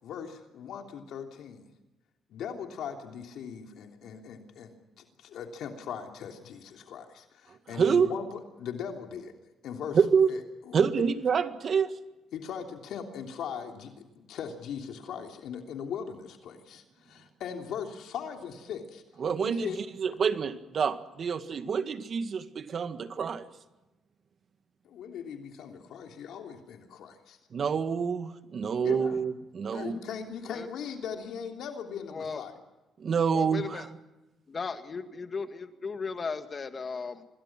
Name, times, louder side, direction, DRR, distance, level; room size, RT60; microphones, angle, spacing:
voice 1, 0.0-1.7 2.3-9.3 9.6-10.0 10.3-10.9 12.3-19.0 19.4-19.8 24.8-27.4 28.8-29.2 29.7-32.6, left 7 dB, 75° left, 3 dB, 3.1 m, -39 dB
voice 2, 7.7-8.1 9.9-10.3 10.7-11.9 19.2-19.7 20.0-23.5 27.5-30.0 33.0-33.9, right 6 dB, 50° right, 10 dB, 1.8 m, -27 dB
voice 3, 32.1-32.4 33.3-33.9 34.5-37.3, left 5 dB, 40° left, 8 dB, 2.1 m, -36 dB
26.5 x 21.0 x 6.1 m, 1.1 s
cardioid pair, 90°, 0 cm